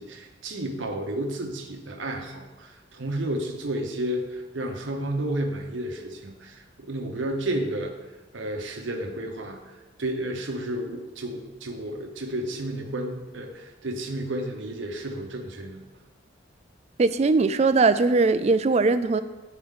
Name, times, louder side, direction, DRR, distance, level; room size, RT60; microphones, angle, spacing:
voice 1, 0.0-8.0 8.3-15.8, right 1 dB, 75° right, 2 dB, 1.0 m, -32 dB
voice 2, 17.0-19.2, right 3 dB, 35° right, 11 dB, 0.3 m, -20 dB
11.0 x 4.5 x 3.7 m, 1.2 s
head